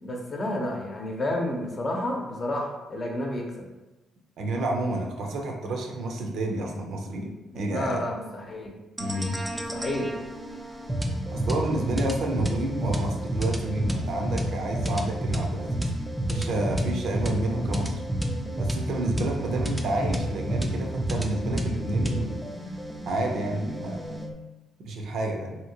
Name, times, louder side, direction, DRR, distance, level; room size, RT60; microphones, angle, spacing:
voice 1, 0.0-3.6 7.5-8.7 9.7-10.1, left 1 dB, 40° left, 0 dB, 0.7 m, -30 dB
voice 2, 4.4-8.1 9.0-9.4 11.3-15.9 16.3-18.0 18.6-22.4 23.1-24.0 24.8-25.6, right 1 dB, 70° right, 1 dB, 0.6 m, -29 dB
sound 1, 9.0-24.3, right 1 dB, 10° right, 0.4 m, -30 dB
2.8 x 2.7 x 2.8 m, 1.0 s
cardioid pair, 90°, 0 cm